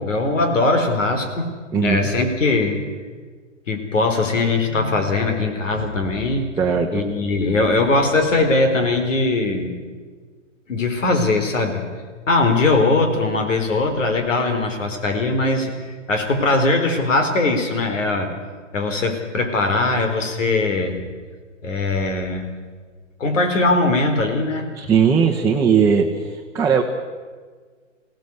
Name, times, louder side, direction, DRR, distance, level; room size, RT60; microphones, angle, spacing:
voice 1, 0.0-1.5 1.8-2.8 3.7-6.5 6.9-9.8 10.7-11.8 12.3-18.3 18.7-21.1 21.6-22.5 23.2-24.7, left 2 dB, 75° left, 5 dB, 4.2 m, -20 dB
voice 2, 1.7-2.1 6.6-7.0 24.8-26.8, right 6 dB, 10° right, -1 dB, 1.3 m, -18 dB
22.0 x 17.0 x 8.1 m, 1.5 s
hypercardioid pair, 130°, 38 cm